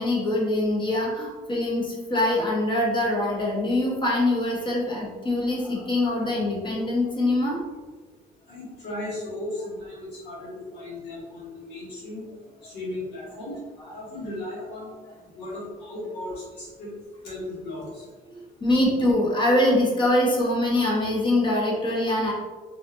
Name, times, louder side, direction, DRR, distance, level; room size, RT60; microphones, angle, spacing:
voice 1, 0.0-7.6 18.3-22.3, left 1 dB, 30° left, -3 dB, 0.8 m, -23 dB
voice 2, 8.5-12.3 12.6-13.6 13.9-14.9 15.3-16.9 17.2-18.0, left 1 dB, 85° left, -8 dB, 1.4 m, -36 dB
2.7 x 2.3 x 2.3 m, 1.3 s
cardioid pair, 110°, 17 cm